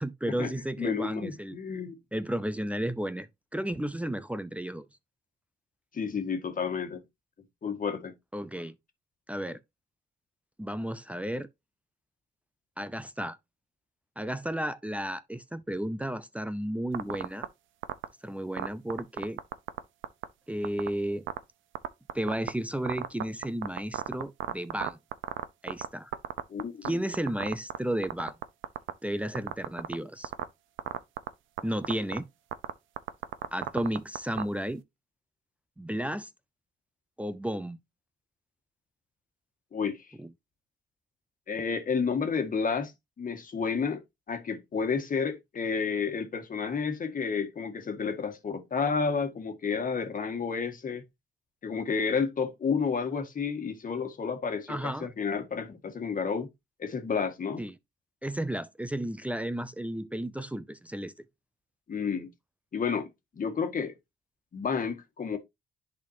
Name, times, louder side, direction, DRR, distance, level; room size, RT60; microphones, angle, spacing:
voice 1, 0.0-1.6 2.1-4.9 8.3-8.8 9.3-9.6 10.6-11.5 12.8-13.4 14.2-17.5 18.2-19.4 20.5-21.3 22.1-25.0 25.6-26.1 26.8-28.3 29.0-30.3 31.6-32.3 33.5-34.8 35.8-36.3 37.2-37.8 40.2-40.3 54.7-55.1 57.6-57.7 58.2-61.1, right 1 dB, 5° right, 0.5 m, -33 dB
voice 2, 0.8-2.0 5.9-7.0 7.6-8.1 26.5-27.0 39.7-40.0 41.5-42.9 43.2-44.0 44.3-51.0 51.6-56.5 56.8-57.6 61.9-62.3 62.7-63.1 63.3-63.9 64.5-65.4, left 5 dB, 45° left, 1.7 m, -31 dB
sound 1, 16.9-17.4 17.8-18.0 18.6-19.8 20.0-20.2 20.6-20.9 21.3-21.4 21.7-22.5 22.9-25.9 26.1-26.9 27.1-27.8 28.0-28.9 29.3-29.9 30.2-30.4 30.8-31.3 31.6-31.7 31.8-32.2 32.5-34.4, right 13 dB, 75° right, 0.7 m, -31 dB
10.5 x 4.3 x 2.7 m
cardioid pair, 90°, 20 cm